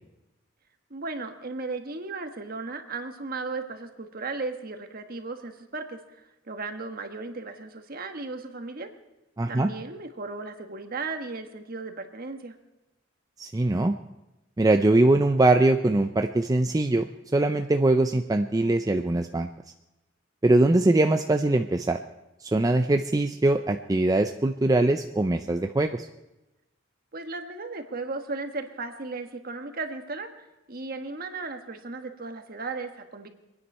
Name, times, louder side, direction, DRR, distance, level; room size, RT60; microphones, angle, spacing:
voice 1, 0.9-8.9 9.5-12.5 27.1-30.3 30.7-33.3, right 3 dB, 50° right, 6 dB, 1.3 m, -36 dB
voice 2, 9.4-9.7 13.4-14.0 14.6-17.0 17.3-19.5 20.4-22.0 22.4-26.1, right 2 dB, 20° right, 6 dB, 0.4 m, -22 dB
24.5 x 9.8 x 5.5 m, 1.0 s
head